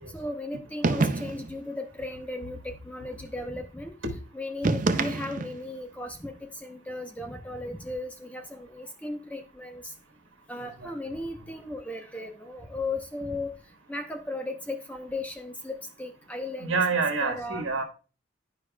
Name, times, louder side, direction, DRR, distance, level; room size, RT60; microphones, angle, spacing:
voice 1, 0.1-3.9 4.3-9.9 10.5-13.5 13.9-16.8 17.2-17.7, left 2 dB, 5° left, 0.7 m, -36 dB
sound 1, 0.8-1.6 4.6-5.7, right 3 dB, 40° right, 0.5 m, -26 dB
voice 2, 16.6-17.8, right 4 dB, 85° right, 1.4 m, -27 dB
11.5 x 4.8 x 2.2 m
head